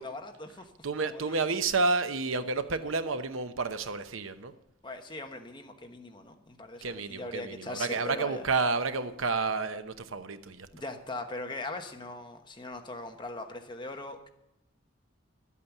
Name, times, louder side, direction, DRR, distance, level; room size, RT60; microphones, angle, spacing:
voice 1, 0.0-0.7 1.1-1.4 4.8-8.4 10.7-14.3, left 2 dB, 25° left, 5 dB, 1.1 m, -40 dB
voice 2, 0.8-4.5 6.8-10.7, right 4 dB, 85° right, 10 dB, 0.9 m, -30 dB
12.5 x 8.4 x 7.2 m, 0.87 s
head